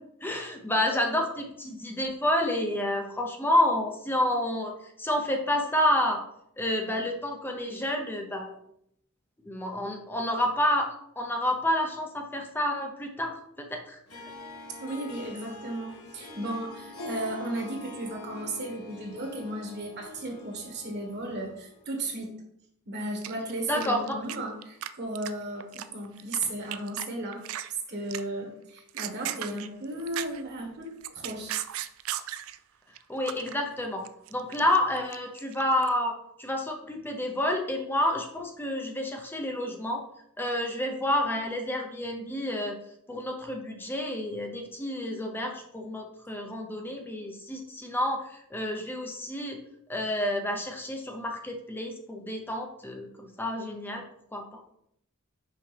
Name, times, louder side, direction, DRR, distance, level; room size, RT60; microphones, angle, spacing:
voice 1, 0.2-4.7 5.0-6.2 6.6-8.5 9.5-10.9 11.2-13.4 13.7-14.0 23.7-24.2 33.1-34.0 34.3-40.0 40.4-42.8 43.1-49.6 49.9-54.0 54.3-54.6, left 1 dB, 10° left, 2 dB, 0.6 m, -29 dB
Harp, 14.1-21.8, left 2 dB, 85° left, 1.5 m, -44 dB
voice 2, 14.8-22.4 22.9-27.4 27.9-31.6, right 1 dB, 50° right, 1 dB, 1.4 m, -35 dB
sound 1, 23.2-24.4 24.6-24.9 25.1-26.4 26.7-27.0 27.3-27.7 28.1-28.4 28.8-30.5 30.9-32.6 33.0-33.5 33.8-35.9, right 12 dB, 65° right, 0.4 m, -36 dB
5.7 x 5.2 x 3.3 m, 0.74 s
head